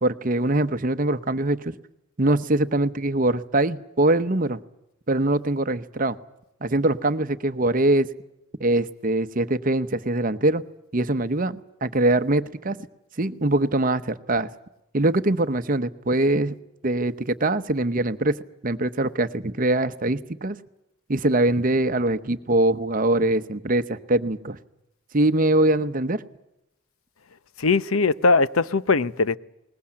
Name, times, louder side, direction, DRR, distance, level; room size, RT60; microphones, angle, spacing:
voice 1, 0.0-1.7 2.2-4.6 5.1-6.2 6.6-8.1 8.6-10.6 10.9-12.8 13.2-14.5 14.9-16.6 16.8-18.4 18.6-20.6 21.1-24.6 25.1-26.2, right 2 dB, 40° right, 12 dB, 0.9 m, -23 dB
voice 2, 27.6-29.4, left 4 dB, 80° left, 16 dB, 0.8 m, -20 dB
21.5 x 20.5 x 8.7 m, 0.87 s
head